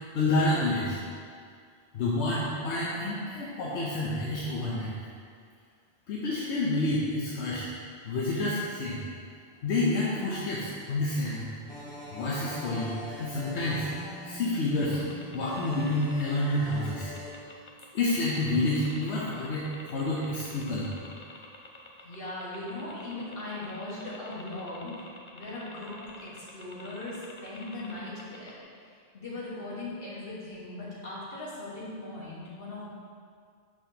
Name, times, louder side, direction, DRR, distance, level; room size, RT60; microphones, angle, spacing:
voice 1, 0.1-1.0 1.9-4.9 6.1-7.6 8.0-9.0 9.6-11.5 12.1-15.0 15.3-17.1 17.9-20.9, left 2 dB, 85° left, -6 dB, 1.0 m, -29 dB
sound 1, 11.7-17.3, equal, 5° left, 1.3 m, -42 dB
sound 2, 14.8-28.6, left 2 dB, 40° left, 0.5 m, -48 dB
voice 2, 22.0-24.9 25.3-28.6 29.1-32.8, left 2 dB, 60° left, -8 dB, 1.7 m, -39 dB
5.9 x 5.9 x 2.8 m, 2.1 s
omnidirectional pair, 1.1 m